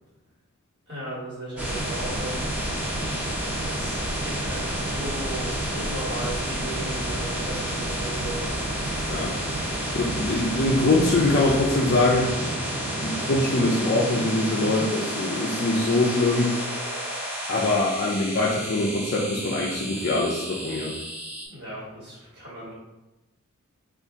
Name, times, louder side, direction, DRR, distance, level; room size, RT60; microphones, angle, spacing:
voice 1, 0.9-2.7 3.3-8.5 21.5-22.7, right 1 dB, 45° right, -7 dB, 1.4 m, -36 dB
sound 1, 1.6-21.5, right 1 dB, 5° right, 0.9 m, -30 dB
voice 2, 9.9-12.3 13.0-16.5 17.5-20.9, left 2 dB, 45° left, -4 dB, 0.5 m, -23 dB
4.1 x 2.5 x 3.6 m, 1.0 s
head